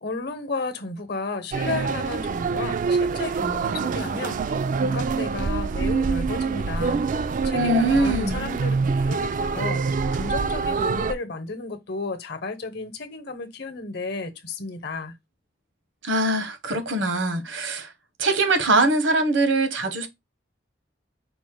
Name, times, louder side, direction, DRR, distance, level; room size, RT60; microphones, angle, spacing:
voice 1, 0.0-8.7 9.1-9.8 10.1-15.1, left 3 dB, 60° left, 0.9 m, -33 dB
sound 1, 1.5-11.1, right 4 dB, 45° right, 0.3 m, -25 dB
voice 2, 7.5-8.4 16.0-17.9 18.2-20.1, right 2 dB, 80° right, 1.1 m, -22 dB
5.3 x 2.1 x 4.6 m
head